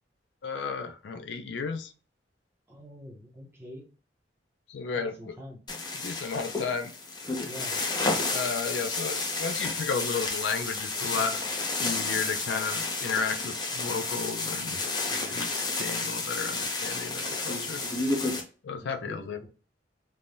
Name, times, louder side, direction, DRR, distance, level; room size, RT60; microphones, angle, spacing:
voice 1, 0.4-1.9 4.7-5.3 5.9-6.9 8.3-11.4 11.8-14.8 15.3-15.5 15.8-17.8 18.6-19.5, left 5 dB, 80° left, 7 dB, 0.4 m, -33 dB
voice 2, 2.7-3.8 4.9-5.6 7.4-7.8 11.1-11.4 15.1-15.5 18.8-19.5, equal, 15° right, 0 dB, 0.7 m, -45 dB
sound 1, 5.7-18.4, left 3 dB, 25° left, 0.6 m, -31 dB
3.3 x 2.2 x 2.6 m, 0.38 s
head